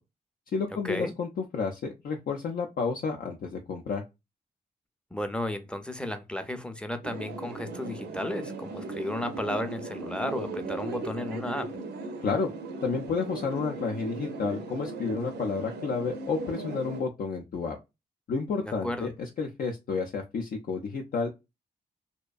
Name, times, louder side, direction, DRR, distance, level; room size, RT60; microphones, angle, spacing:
voice 1, 0.5-4.0 12.2-12.5 12.8-17.8 18.3-21.3, left 4 dB, 60° left, 0.5 m, -31 dB
voice 2, 5.1-11.7 18.6-19.1, left 1 dB, 5° left, 0.5 m, -33 dB
sound 1, 7.0-17.0, right 3 dB, 75° right, 0.5 m, -38 dB
2.5 x 2.1 x 2.3 m
supercardioid pair, 50°, 17 cm